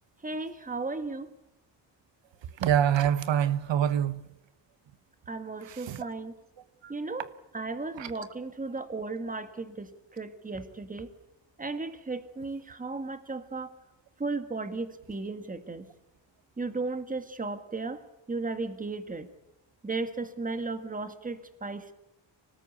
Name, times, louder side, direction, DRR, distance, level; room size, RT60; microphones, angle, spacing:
voice 1, 0.2-1.3 5.3-6.3 6.9-7.3 7.5-11.1 11.6-13.7 14.2-15.8 16.6-18.0 18.3-19.3 19.8-21.9, right 3 dB, 20° right, 1.7 m, -35 dB
voice 2, 2.6-4.3 5.6-6.0 6.8-6.9 8.0-8.1, right 9 dB, 75° right, 1.0 m, -26 dB
26.0 x 19.0 x 8.3 m
wide cardioid pair, 165°, 45 cm